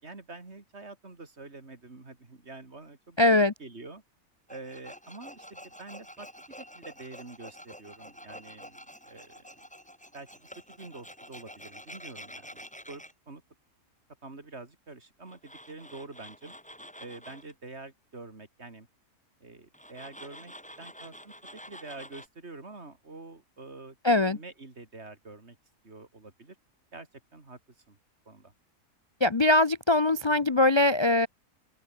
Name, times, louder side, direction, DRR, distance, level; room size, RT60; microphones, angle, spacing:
voice 1, 0.0-4.0 4.5-9.5 10.1-13.4 14.2-16.5 17.0-18.9 19.4-25.6 25.8-26.6 26.9-27.6 27.9-28.0 28.2-28.5, right 3 dB, 45° right, 3.5 m, -47 dB
voice 2, 3.2-3.5 24.0-24.4 29.2-31.3, left 2 dB, 45° left, 0.3 m, -22 dB
Tools, 4.5-13.1 15.3-17.5 19.7-22.3, equal, 5° left, 6.4 m, -48 dB
open air
omnidirectional pair, 1.6 m